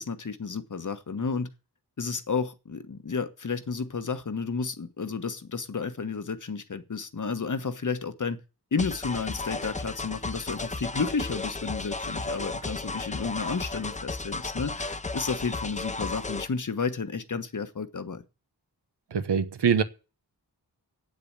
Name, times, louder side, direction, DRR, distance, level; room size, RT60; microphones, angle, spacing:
voice 1, 0.0-1.5 2.0-8.4 8.7-18.2, left 5 dB, 50° left, 1.3 m, -32 dB
sound 1, 8.8-16.5, left 3 dB, 20° left, 0.6 m, -34 dB
voice 2, 19.1-19.8, right 7 dB, 90° right, 1.2 m, -23 dB
8.7 x 7.8 x 8.8 m
wide cardioid pair, 95°, 40 cm